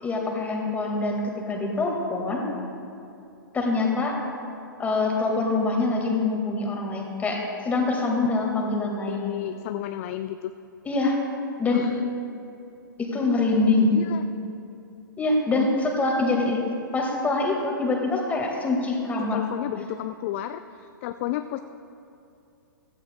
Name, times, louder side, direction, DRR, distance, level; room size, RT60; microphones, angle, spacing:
voice 1, 0.0-2.4 3.5-4.1 4.8-9.3 10.8-11.2 11.6-11.9 13.0-14.0 15.2-16.7 16.9-19.4, left 3 dB, 15° left, 0 dB, 1.7 m, -24 dB
voice 2, 9.1-10.5 11.7-11.9 13.9-14.2 19.2-21.6, left 13 dB, 35° left, 10 dB, 0.3 m, -32 dB
16.0 x 13.0 x 2.2 m, 2.7 s
figure-of-eight pair, 120°, 12 cm